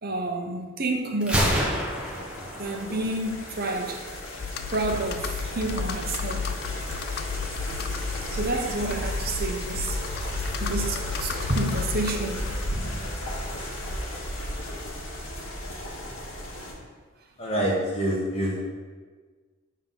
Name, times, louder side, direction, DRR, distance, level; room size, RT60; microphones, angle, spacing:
voice 1, 0.0-1.6 2.5-4.0 4.7-6.5 8.3-10.0 10.6-12.5, right 2 dB, 45° right, 3 dB, 0.8 m, -29 dB
Gunshot gunfire, 1.2-3.2, equal, 5° right, 1.0 m, -27 dB
sound 1, 1.4-16.7, equal, 65° left, 1.7 m, -35 dB
Computer keyboard, 4.4-13.0, left 5 dB, 50° left, 0.3 m, -33 dB
voice 2, 17.4-18.6, equal, 30° left, -3 dB, 1.5 m, -26 dB
7.3 x 3.7 x 5.7 m, 1.4 s
head